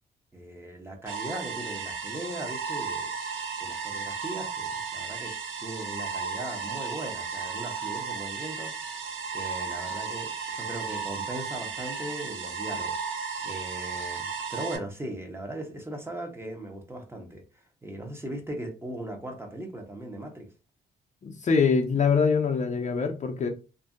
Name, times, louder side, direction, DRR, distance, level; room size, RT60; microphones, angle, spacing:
voice 1, 0.3-5.3 5.6-9.0 9.3-13.0 13.4-17.4 17.8-20.5, right 1 dB, 10° right, 0.7 m, -39 dB
sound 1, 1.1-14.8, right 5 dB, 75° right, 0.6 m, -34 dB
voice 2, 21.2-23.5, left 5 dB, 35° left, 0.5 m, -24 dB
2.6 x 2.5 x 2.4 m
cardioid pair, 90°, 20 cm